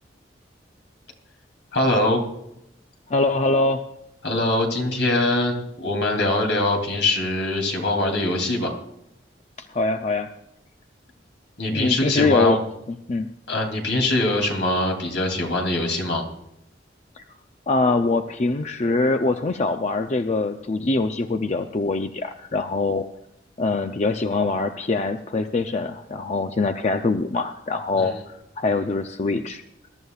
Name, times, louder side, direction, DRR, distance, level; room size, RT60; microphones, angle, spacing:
voice 1, 1.7-2.2 4.2-8.7 11.6-12.6 13.5-16.2 27.9-28.1, left 2 dB, 80° left, 2 dB, 2.9 m, -23 dB
voice 2, 3.1-3.8 9.6-10.3 11.7-12.6 13.1-13.3 17.2-17.3 17.7-23.0 23.6-29.6, left 3 dB, 40° left, 7 dB, 0.5 m, -23 dB
21.0 x 12.5 x 2.4 m, 0.82 s
head